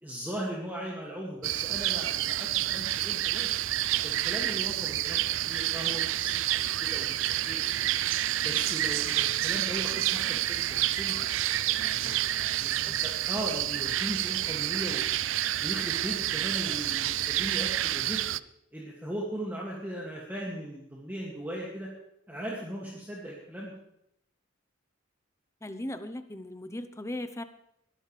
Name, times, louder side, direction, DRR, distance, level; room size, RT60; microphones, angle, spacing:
voice 1, 0.0-3.6 4.0-5.2 5.4-6.4 6.8-7.6 8.4-12.2 12.6-15.2 15.6-18.2 18.7-21.9 22.3-23.7, right 1 dB, 10° right, -4 dB, 2.2 m, -38 dB
sound 1, 1.4-18.4, right 13 dB, 75° right, 0.4 m, -29 dB
voice 2, 25.6-27.4, left 1 dB, 15° left, 9 dB, 0.8 m, -37 dB
22.0 x 12.5 x 3.4 m, 0.77 s
head